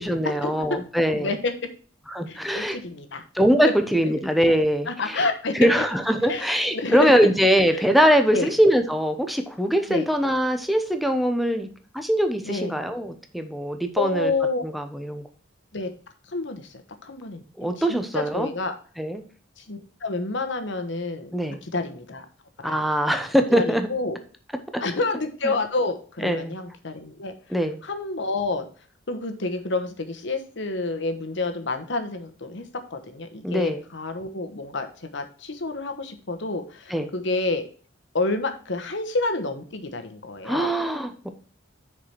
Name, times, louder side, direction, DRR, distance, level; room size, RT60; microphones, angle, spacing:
voice 1, 0.0-1.3 2.1-2.8 3.3-5.2 5.5-11.7 11.9-14.3 14.6-15.3 17.6-18.5 19.0-19.2 21.3-21.6 22.6-23.9 24.7-24.8 25.4-25.6 26.2-26.5 27.5-27.8 33.4-33.8 36.9-37.1 40.4-41.3, equal, ahead, 7 dB, 0.9 m, -22 dB
voice 2, 1.1-1.7 2.3-3.2 3.6-3.7 4.9-5.7 6.2-6.5 6.7-7.3 7.7-7.8 8.3-8.5 9.9-10.1 12.4-12.7 14.0-14.6 15.7-15.9 16.3-16.7 17.0-18.7 19.6-21.3 21.6-22.2 22.6-22.8 23.5-24.2 24.8-27.3 27.8-28.6 29.1-37.6 38.1-40.7, left 3 dB, 65° left, 7 dB, 1.2 m, -29 dB
6.4 x 4.9 x 5.9 m, 0.41 s
head